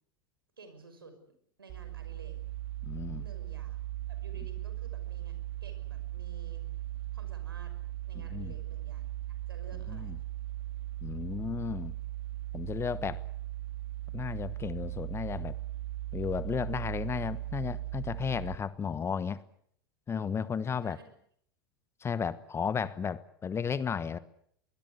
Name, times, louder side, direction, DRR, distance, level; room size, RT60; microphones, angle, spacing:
voice 1, 0.6-1.2 1.6-2.4 3.2-3.8 4.1-6.7 7.1-7.7 8.0-9.1 9.5-10.1 20.8-21.1, right 3 dB, 85° right, 8 dB, 5.9 m, -53 dB
sound 1, 1.7-18.6, right 15 dB, 50° right, 3.2 m, -38 dB
voice 2, 2.8-3.2 8.3-8.5 9.9-10.2 11.0-11.9 12.5-13.2 14.1-15.6 16.1-19.4 20.1-21.0 22.0-24.2, left 6 dB, 20° left, 17 dB, 1.2 m, -34 dB
24.5 x 20.5 x 8.2 m, 0.66 s
hypercardioid pair, 90°, 12 cm